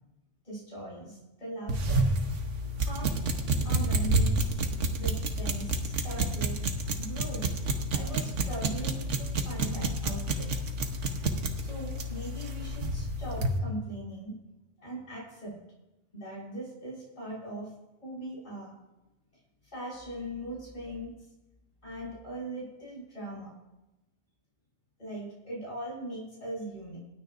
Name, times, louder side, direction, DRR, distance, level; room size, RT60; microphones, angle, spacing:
voice 1, 0.4-2.1 2.6-3.2 3.6-4.6 4.9-6.6 7.0-7.5 7.9-10.5 11.5-14.4 14.8-15.5 16.1-17.7 18.0-18.7 19.7-21.1 21.8-23.5 25.0-27.0, right 1 dB, 40° left, -7 dB, 5.8 m, -40 dB
sound 1, 1.7-13.6, right 2 dB, 75° right, 1.4 m, -29 dB
26.5 x 9.4 x 2.6 m, 0.99 s
omnidirectional pair, 1.3 m